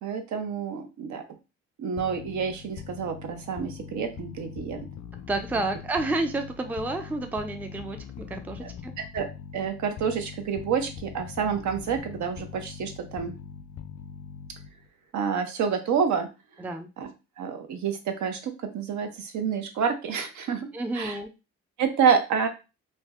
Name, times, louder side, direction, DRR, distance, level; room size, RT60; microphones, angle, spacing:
voice 1, 0.0-1.2 1.8-4.8 8.6-8.7 9.1-9.3 9.5-13.4 15.1-16.3 17.0-17.1 17.4-20.7 21.0-21.1 21.8-22.5, right 6 dB, 70° right, 6 dB, 0.7 m, -28 dB
sound 1, 2.0-14.9, left 8 dB, 65° left, 0.5 m, -42 dB
voice 2, 5.3-8.9 16.6-16.9 20.7-21.3, right 2 dB, 5° right, 6 dB, 0.4 m, -30 dB
2.5 x 2.1 x 3.4 m, 0.29 s
cardioid pair, 90°, 30 cm